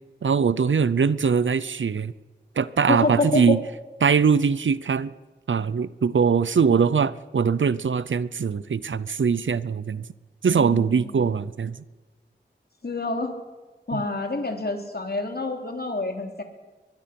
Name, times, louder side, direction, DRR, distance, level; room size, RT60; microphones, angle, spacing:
voice 1, 0.2-2.1 2.6-3.6 4.0-5.1 5.5-10.0 10.4-11.8 13.9-14.0, right 6 dB, 85° right, 18 dB, 0.7 m, -22 dB
voice 2, 2.9-3.6 10.5-11.2 12.8-13.3 13.9-16.4, left 2 dB, 55° left, 4 dB, 3.2 m, -27 dB
22.5 x 22.0 x 5.9 m, 1.2 s
wide cardioid pair, 75°, 19 cm